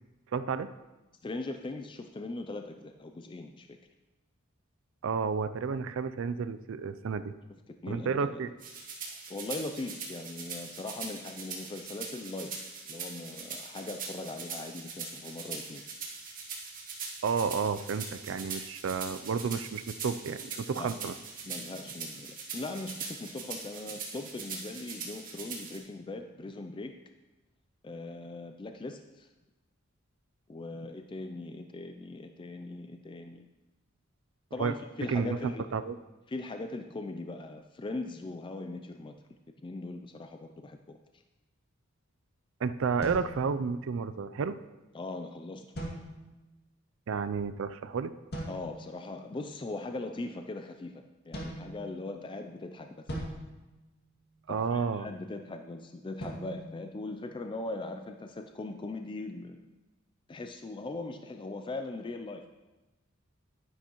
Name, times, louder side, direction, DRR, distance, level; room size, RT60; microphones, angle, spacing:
voice 1, 0.3-0.7 5.0-7.3 7.9-8.5 17.2-21.1 34.6-34.7 35.1-35.4 35.7-35.9 42.6-44.6 47.1-48.1 54.5-55.1, right 5 dB, 65° right, 12 dB, 0.4 m, -31 dB
voice 2, 1.2-3.8 7.8-8.4 9.0-12.5 12.9-15.8 20.8-20.9 21.4-26.9 27.8-29.3 30.5-33.5 34.5-35.8 36.3-39.1 39.6-41.2 44.9-45.7 48.5-53.1 54.5-59.6 60.3-62.5, left 2 dB, 25° left, 6 dB, 0.4 m, -40 dB
sound 1, 8.6-25.8, right 5 dB, 40° right, 1.6 m, -41 dB
sound 2, 43.0-44.1 45.7-46.6 48.3-49.0 51.3-52.4 53.1-54.5 56.2-57.7, right 1 dB, 50° left, 2.2 m, -42 dB
10.5 x 9.9 x 3.0 m, 1.1 s
head